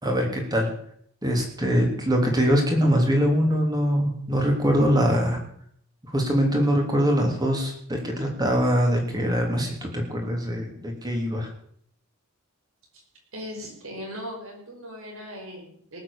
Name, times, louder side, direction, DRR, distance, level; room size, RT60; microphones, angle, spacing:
voice 1, 0.0-0.7 1.2-5.4 6.1-11.5, equal, 20° right, 1 dB, 3.3 m, -23 dB
voice 2, 13.3-16.0, equal, 65° right, -1 dB, 5.6 m, -38 dB
18.5 x 7.5 x 7.2 m, 0.65 s
head